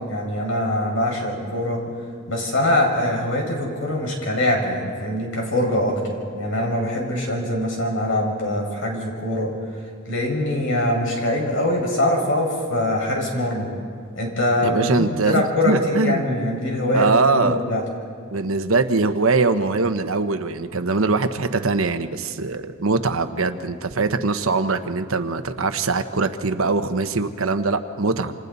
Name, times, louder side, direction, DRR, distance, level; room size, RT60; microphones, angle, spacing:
voice 1, 0.0-1.8 2.3-9.5 10.1-13.7 14.2-17.8, left 1 dB, 70° left, 0 dB, 5.6 m, -23 dB
voice 2, 14.6-16.3 16.9-17.6 18.3-28.3, right 3 dB, 85° right, 9 dB, 1.1 m, -22 dB
28.5 x 26.5 x 4.1 m, 2.1 s
head